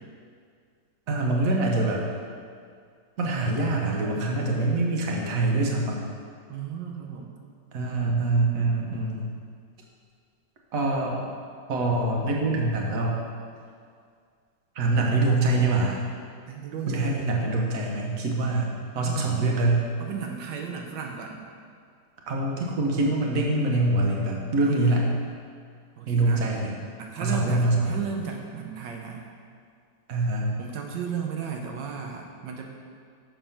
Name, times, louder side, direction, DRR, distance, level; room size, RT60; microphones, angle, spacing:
voice 1, 1.1-2.0 3.2-6.0 7.7-9.3 10.7-11.2 11.7-13.2 14.8-16.0 16.9-18.7 18.9-19.8 22.3-25.1 26.1-26.7 27.2-28.0 30.1-30.6, right 2 dB, 55° right, -1 dB, 1.3 m, -24 dB
voice 2, 6.5-7.3 16.5-17.3 19.0-19.5 20.0-21.4 24.6-25.0 26.0-26.5 27.0-29.3 30.6-32.7, right 6 dB, 80° right, 1 dB, 1.4 m, -35 dB
7.1 x 5.6 x 5.6 m, 2.2 s
omnidirectional pair, 1.9 m